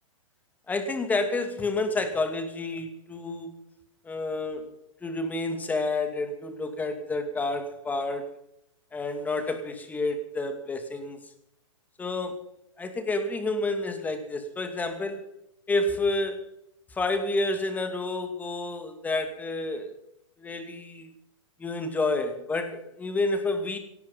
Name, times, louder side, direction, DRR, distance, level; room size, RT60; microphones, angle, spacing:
voice 1, 0.7-3.6 4.0-4.7 5.0-8.3 8.9-11.2 12.0-12.4 12.8-15.3 15.7-16.5 16.9-20.0 20.4-21.1 21.6-23.8, left 2 dB, 10° left, 7 dB, 2.4 m, -29 dB
18.0 x 13.5 x 5.7 m, 0.80 s
hypercardioid pair, 145°, 17 cm